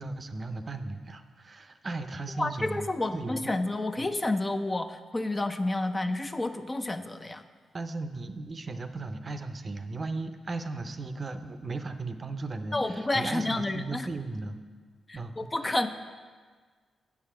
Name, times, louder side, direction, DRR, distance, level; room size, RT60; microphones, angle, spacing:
voice 1, 0.0-3.5 4.0-4.1 7.7-14.6 15.1-15.8, right 3 dB, 45° right, 8 dB, 0.6 m, -36 dB
voice 2, 2.4-7.4 12.7-14.1 15.1-15.9, left 2 dB, 25° left, 8 dB, 0.5 m, -30 dB
8.3 x 4.8 x 5.7 m, 1.5 s
supercardioid pair, 50°, 0 cm